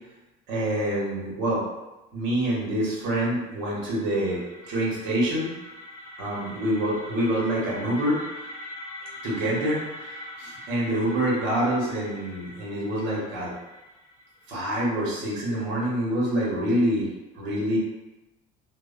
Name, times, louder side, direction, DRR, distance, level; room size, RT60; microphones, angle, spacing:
voice 1, 0.5-1.6 2.1-5.5 6.2-8.2 9.2-13.5 14.5-17.1 17.4-17.8, right 1 dB, 70° right, -5 dB, 1.1 m, -26 dB
sound 1, 3.5-15.2, left 1 dB, 20° left, 0.7 m, -43 dB
2.5 x 2.1 x 2.5 m, 1.0 s
supercardioid pair, 105°, 20 cm